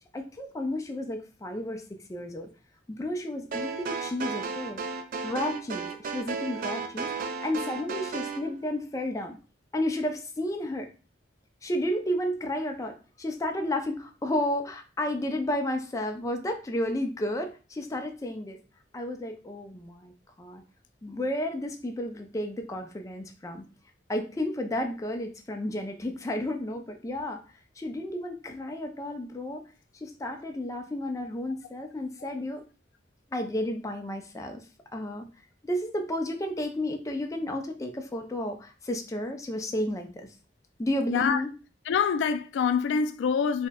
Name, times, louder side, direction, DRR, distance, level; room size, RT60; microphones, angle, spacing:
voice 1, 0.1-2.5 3.0-4.8 5.2-9.4 9.7-10.9 11.6-18.6 18.9-20.1 20.4-20.6 21.0-23.6 24.1-27.4 27.8-29.6 29.9-32.6 33.3-34.6 34.9-35.3 35.6-40.3 40.8-41.5, left 1 dB, 20° left, 0.4 m, -32 dB
sound 1, 3.5-8.4, right 4 dB, 50° right, 0.3 m, -34 dB
voice 2, 41.9-43.7, left 6 dB, 85° left, 0.3 m, -25 dB
4.1 x 2.1 x 2.2 m
head